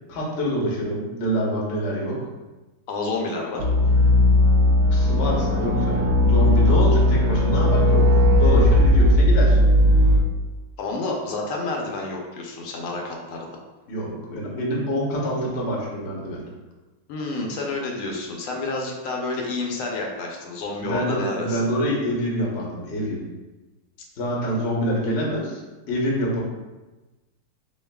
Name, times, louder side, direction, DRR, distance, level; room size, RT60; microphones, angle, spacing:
voice 1, 0.1-2.2 4.9-9.6 13.9-16.4 20.8-23.2 24.2-25.6 25.9-26.4, equal, 50° left, -3 dB, 0.8 m, -26 dB
voice 2, 2.9-3.7 10.8-13.6 17.1-21.7, left 3 dB, 80° left, 0 dB, 1.6 m, -29 dB
sound 1, 3.6-10.2, left 1 dB, 85° right, 0.8 m, -17 dB
6.9 x 2.4 x 2.3 m, 1.1 s
omnidirectional pair, 2.3 m